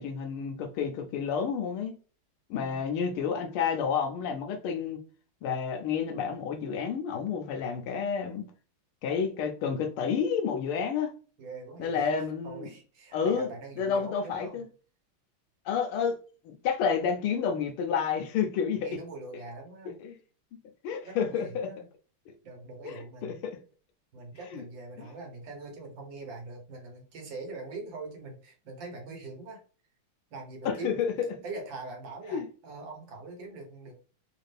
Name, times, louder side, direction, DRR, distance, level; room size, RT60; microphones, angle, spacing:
voice 1, 0.0-2.0 2.5-5.0 5.4-8.5 9.0-11.1 11.8-12.7 13.1-13.5 13.8-14.7 15.7-16.2 16.4-19.0 20.0-20.1 20.8-21.7 22.3-22.4 22.8-23.6 24.5-24.6 25.0-25.1 30.6-31.1 32.3-32.4, left 6 dB, 85° left, 1.6 m, -30 dB
voice 2, 11.4-12.1 12.4-14.6 18.8-20.0 21.0-21.8 22.4-23.4 24.1-29.6 30.3-31.0 31.4-34.0, right 3 dB, 65° right, 1.7 m, -43 dB
4.3 x 2.5 x 3.3 m
omnidirectional pair, 2.3 m